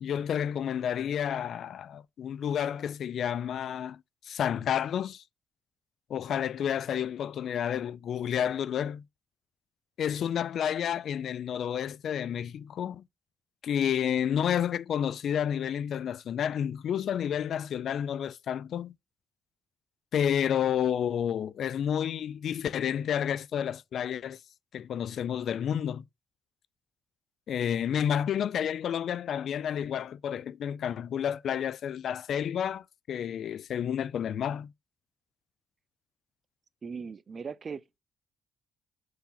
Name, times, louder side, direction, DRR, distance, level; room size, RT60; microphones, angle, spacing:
voice 1, 0.0-5.2 6.1-9.0 10.0-13.0 13.6-18.9 20.1-24.4 24.7-26.0 27.5-34.7, left 9 dB, 65° left, 0.4 m, -30 dB
voice 2, 36.8-38.0, right 5 dB, 40° right, 0.5 m, -39 dB
5.2 x 4.8 x 5.7 m
cardioid pair, 90°, 0 cm